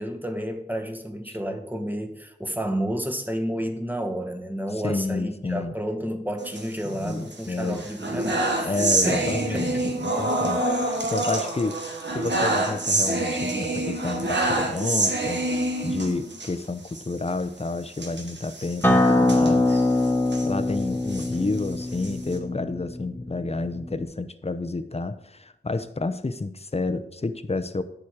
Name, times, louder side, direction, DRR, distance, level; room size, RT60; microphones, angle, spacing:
voice 1, 0.0-9.9, equal, 10° right, 5 dB, 1.2 m, -31 dB
voice 2, 4.8-5.7 6.8-7.8 8.6-11.8 12.1-19.8 20.4-27.8, left 3 dB, 35° left, 12 dB, 0.7 m, -30 dB
sound 1, 6.4-7.3 7.7-16.5 16.9-17.0 17.3-17.4 17.9-20.5 21.0-22.4, right 2 dB, 90° right, 1.4 m, -27 dB
Acoustic guitar, 18.8-24.0, left 2 dB, 10° left, 1.2 m, -23 dB
10.0 x 7.1 x 4.8 m, 0.80 s
wide cardioid pair, 65°, 18 cm